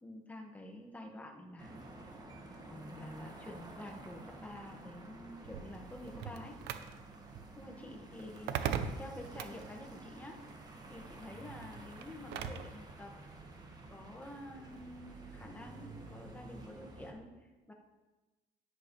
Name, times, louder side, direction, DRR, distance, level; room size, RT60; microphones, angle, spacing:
voice 1, 0.0-1.7 2.7-6.6 7.6-8.6 9.0-10.4 10.9-13.1 13.9-17.7, left 1 dB, 10° left, 1 dB, 1.7 m, -49 dB
sound 1, 1.6-17.1, right 2 dB, 25° right, 1.8 m, -51 dB
sound 2, 5.4-12.8, right 8 dB, 85° right, 0.7 m, -41 dB
11.0 x 10.5 x 3.3 m, 1.2 s
cardioid pair, 110°, 17 cm